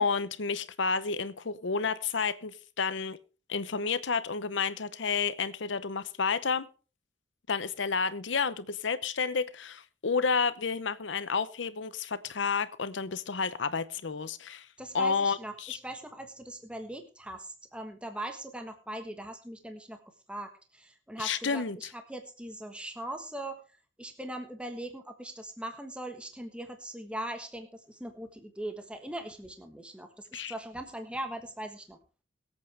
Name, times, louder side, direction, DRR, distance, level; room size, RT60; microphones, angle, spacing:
voice 1, 0.0-3.2 3.5-6.7 7.5-14.7 14.9-15.8 21.2-21.9 30.3-30.5, left 5 dB, 75° left, 0.8 m, -30 dB
voice 2, 14.8-20.0 20.3-23.6 24.0-32.0, right 1 dB, 5° right, 1.3 m, -40 dB
22.5 x 8.3 x 3.4 m
head